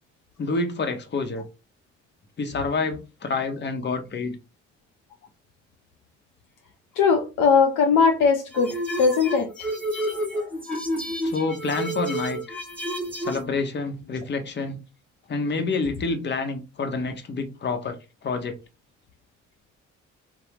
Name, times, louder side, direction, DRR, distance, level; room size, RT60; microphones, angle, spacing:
voice 1, 0.4-1.4 2.4-4.4 11.2-12.6 13.2-14.8 15.3-18.0 18.2-18.6, left 3 dB, 30° left, 0.8 m, -28 dB
voice 2, 7.0-9.5 10.3-10.5, left 5 dB, 65° left, 0.6 m, -20 dB
sound 1, 8.5-13.4, equal, 5° left, 1.0 m, -30 dB
2.7 x 2.0 x 3.4 m
hypercardioid pair, 50°, 34 cm